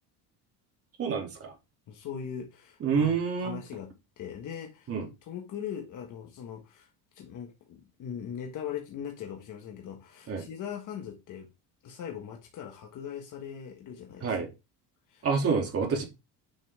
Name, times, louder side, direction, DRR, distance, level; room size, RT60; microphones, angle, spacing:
voice 1, 1.0-1.5 2.8-3.6 4.9-5.1 10.3-10.5 14.2-14.5 15.2-16.0, right 5 dB, 35° right, 3.0 m, -28 dB
voice 2, 1.9-4.9 5.2-6.9 7.1-11.5 11.8-14.4 15.1-15.3, left 8 dB, 50° left, 1.6 m, -40 dB
9.3 x 5.8 x 3.6 m
cardioid pair, 145°, 40 cm